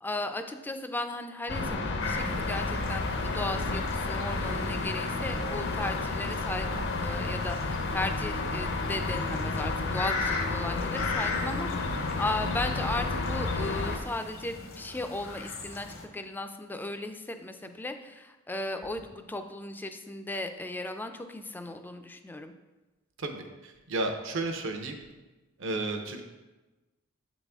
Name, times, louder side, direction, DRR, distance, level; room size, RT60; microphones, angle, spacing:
voice 1, 0.0-22.5, left 2 dB, 10° left, 7 dB, 0.3 m, -36 dB
sound 1, 1.5-14.0, left 3 dB, 60° left, 0.6 m, -31 dB
sound 2, 2.0-16.0, left 3 dB, 75° left, 0.9 m, -39 dB
voice 2, 23.2-25.0 25.6-26.2, right 2 dB, 65° right, 5 dB, 0.7 m, -33 dB
7.5 x 4.1 x 3.5 m, 1.2 s
head